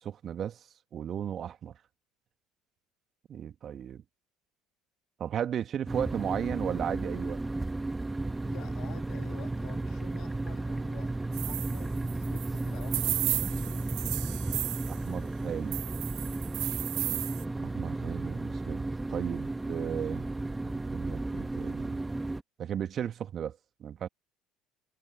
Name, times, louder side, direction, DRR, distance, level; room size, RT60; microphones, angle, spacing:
voice 1, 0.0-1.7 3.3-4.0 5.2-7.4 14.9-15.8 17.6-20.3 20.6-22.0 22.6-24.1, right 9 dB, 45° right, 2.6 m, -35 dB
sound 1, 5.9-22.4, right 2 dB, 15° right, 1.4 m, -34 dB
voice 2, 8.5-11.1 11.4-14.2, left 16 dB, 60° left, 2.8 m, -50 dB
sound 2, 11.3-15.0 15.7-17.4, right 19 dB, 65° right, 0.8 m, -34 dB
hypercardioid pair, 60°, 0 cm